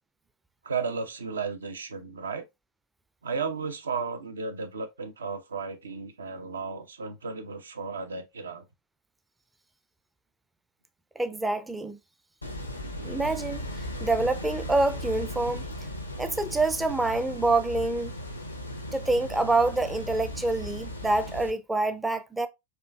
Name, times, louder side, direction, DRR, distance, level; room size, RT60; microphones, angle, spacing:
voice 1, 0.6-2.5 3.2-8.6, right 5 dB, 70° right, 0.5 m, -34 dB
voice 2, 11.2-12.0 13.0-13.7 14.0-15.6 16.2-18.1 18.9-22.5, right 2 dB, 10° right, 0.4 m, -26 dB
sound 1, 12.4-21.5, left 1 dB, 85° left, 0.6 m, -37 dB
4.4 x 2.5 x 2.2 m
figure-of-eight pair, 90°, 0 cm